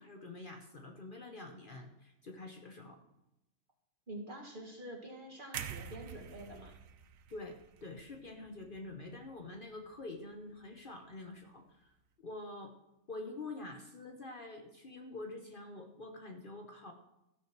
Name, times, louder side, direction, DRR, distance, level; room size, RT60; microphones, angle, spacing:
voice 1, 0.0-3.0 7.3-11.9 12.2-12.7 13.1-16.9, left 2 dB, 45° left, 4 dB, 1.1 m, -46 dB
voice 2, 4.1-6.8, right 1 dB, 40° right, 1 dB, 2.0 m, -47 dB
sound 1, 5.5-9.6 9.9-10.1, right 8 dB, 85° right, 1.1 m, -47 dB
14.0 x 6.3 x 5.9 m, 0.90 s
omnidirectional pair, 1.4 m